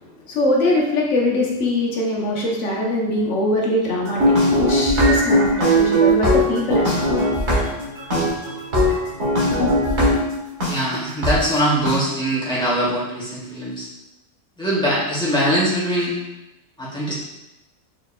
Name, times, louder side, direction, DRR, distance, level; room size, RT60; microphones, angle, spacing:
voice 1, 0.3-4.4 4.7-6.9 8.1-8.2, left 1 dB, 75° left, -2 dB, 1.3 m, -22 dB
sound 1, 4.0-10.7 11.2-11.3 11.9-12.0, equal, 65° right, 1.7 m, -19 dB
voice 2, 10.7-13.9 14.6-16.1 16.8-17.1, equal, 5° left, -8 dB, 1.4 m, -22 dB
4.5 x 4.4 x 2.3 m, 0.97 s
omnidirectional pair, 1.3 m